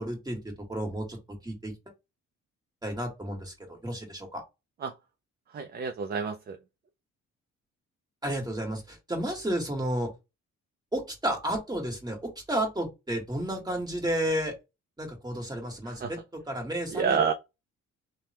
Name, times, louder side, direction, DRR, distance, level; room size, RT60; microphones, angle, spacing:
voice 1, 0.0-1.7 2.8-4.4 8.2-10.1 10.9-14.5 15.0-16.2 16.5-17.3, right 1 dB, 15° right, 1.5 m, -32 dB
voice 2, 5.5-6.6 15.8-16.1 16.9-17.3, right 6 dB, 35° right, 0.4 m, -29 dB
3.3 x 2.2 x 2.8 m
cardioid pair, 90°, 30 cm